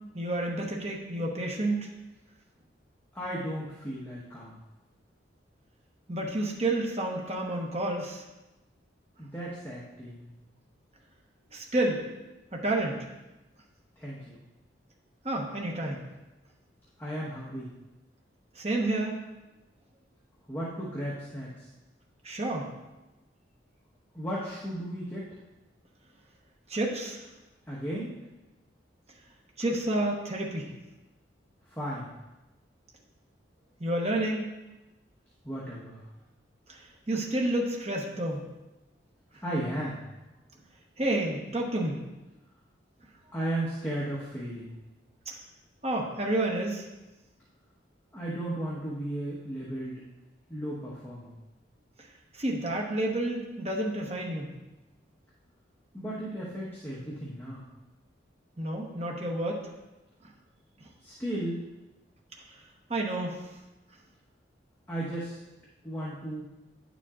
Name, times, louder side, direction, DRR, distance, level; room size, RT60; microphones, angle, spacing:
voice 1, 0.1-1.9 6.1-8.2 11.5-12.0 12.5-13.1 15.2-16.0 18.5-19.2 22.2-22.7 26.7-27.2 29.6-30.7 33.8-34.5 36.7-38.5 41.0-42.0 45.3-45.4 45.8-46.9 52.0-52.1 52.3-54.5 58.6-59.6 62.5-62.6 62.9-63.4, right 1 dB, 35° right, -1 dB, 1.0 m, -30 dB
voice 2, 3.1-4.6 9.2-10.3 14.0-14.4 17.0-17.7 20.5-21.7 24.1-25.4 27.7-28.1 31.7-32.1 35.4-36.1 39.4-40.0 43.3-44.7 48.1-50.0 50.5-51.3 55.9-57.6 61.0-61.6 64.9-65.4 65.8-66.5, right 1 dB, 10° left, -8 dB, 1.2 m, -35 dB
10.5 x 7.1 x 2.5 m, 1.0 s
head